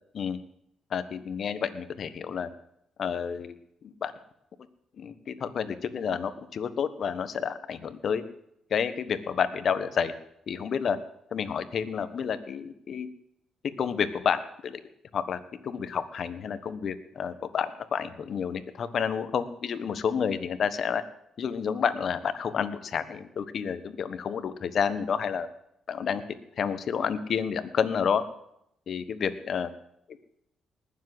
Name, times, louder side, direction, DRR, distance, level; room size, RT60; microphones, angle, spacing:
voice 1, 0.9-2.5 3.0-3.5 3.8-4.1 5.0-8.2 8.7-10.1 10.5-11.0 11.3-13.1 13.8-14.8 15.1-21.0 21.4-25.5 25.9-26.2 26.6-28.2 28.9-29.7, left 7 dB, 55° left, 12 dB, 1.3 m, -30 dB
19.5 x 7.5 x 7.9 m, 0.77 s
cardioid pair, 90°, 0 cm